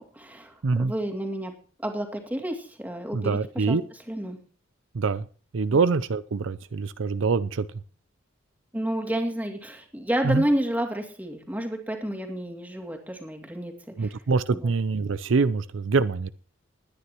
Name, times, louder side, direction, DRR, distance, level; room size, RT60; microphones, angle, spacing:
voice 1, 0.0-0.5 0.8-1.5 1.8-3.8 4.1-4.4 5.7-5.8 8.7-14.2 14.5-14.7, right 1 dB, 10° right, 2 dB, 2.5 m, -30 dB
voice 2, 0.6-0.9 3.1-3.8 4.9-5.2 5.5-7.7 10.2-10.4 14.0-16.3, right 4 dB, 70° right, 15 dB, 0.5 m, -24 dB
20.5 x 9.8 x 3.0 m, 0.40 s
head